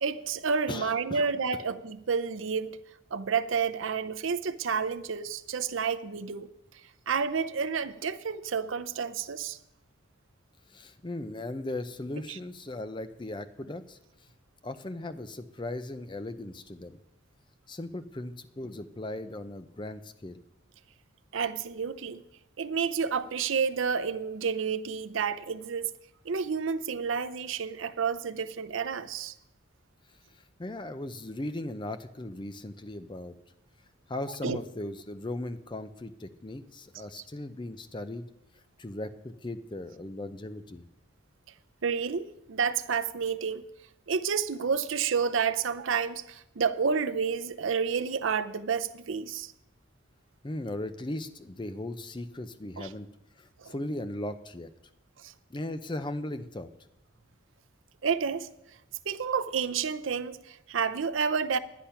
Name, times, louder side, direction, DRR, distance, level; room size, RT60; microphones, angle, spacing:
voice 1, 0.0-2.8 3.1-6.5 7.1-9.6 12.3-12.4 21.3-22.2 22.6-25.9 26.2-29.3 34.4-34.6 41.8-43.6 44.1-49.5 52.8-52.9 53.6-53.7 55.2-55.3 58.0-58.5 59.1-61.6, right 6 dB, 70° right, 0.6 m, -30 dB
voice 2, 0.7-1.3 10.7-14.0 14.6-17.0 17.7-20.4 30.3-33.4 34.1-38.3 38.8-40.8 50.4-53.1 53.4-54.7 55.5-56.7, left 1 dB, 25° left, 0.6 m, -38 dB
10.5 x 10.0 x 5.7 m
head